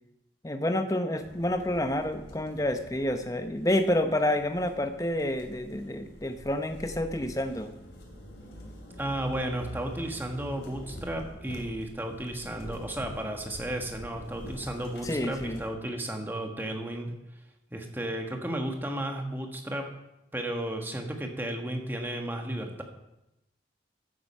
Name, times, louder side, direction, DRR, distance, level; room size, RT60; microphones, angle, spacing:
voice 1, 0.4-7.7 15.0-15.6, left 1 dB, 20° left, 8 dB, 0.8 m, -29 dB
sound 1, 1.2-15.7, equal, 90° left, 2.7 m, -46 dB
voice 2, 9.0-17.1 17.7-19.9 20.3-22.8, right 1 dB, 10° right, 3 dB, 1.3 m, -33 dB
14.0 x 7.8 x 5.5 m, 0.91 s
head